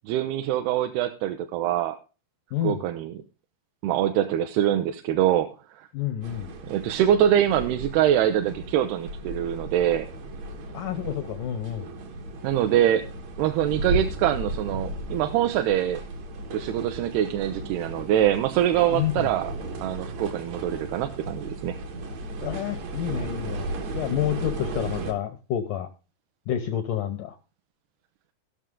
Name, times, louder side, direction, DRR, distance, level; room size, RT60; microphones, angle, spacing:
voice 1, 0.1-2.0 2.6-3.1 3.8-5.9 6.7-10.1 12.4-13.1 13.4-16.0 16.5-19.5 19.8-21.8, right 11 dB, 80° right, 7 dB, 2.5 m, -24 dB
voice 2, 5.9-6.5 10.7-11.9 18.9-19.3 22.4-25.9 26.5-27.4, left 11 dB, 80° left, 7 dB, 1.8 m, -29 dB
sound 1, 6.2-25.1, right 2 dB, 60° right, 1.9 m, -35 dB
18.5 x 6.4 x 3.6 m, 0.32 s
omnidirectional pair, 4.9 m